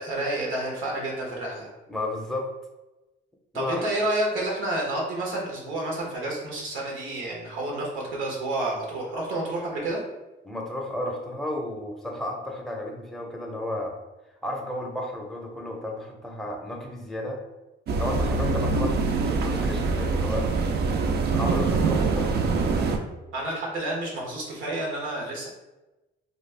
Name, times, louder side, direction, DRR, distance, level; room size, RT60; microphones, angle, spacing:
voice 1, 0.0-1.7 3.5-10.0 23.3-25.5, right 1 dB, 85° right, -2 dB, 0.9 m, -29 dB
voice 2, 1.9-2.5 3.5-3.9 10.4-14.0 14.4-17.4 18.0-20.5 21.3-22.9, left 1 dB, ahead, 0 dB, 0.6 m, -33 dB
sound 1, 17.9-23.0, right 4 dB, 55° right, 0.4 m, -24 dB
2.4 x 2.3 x 3.2 m, 1.0 s
cardioid pair, 90°, 20 cm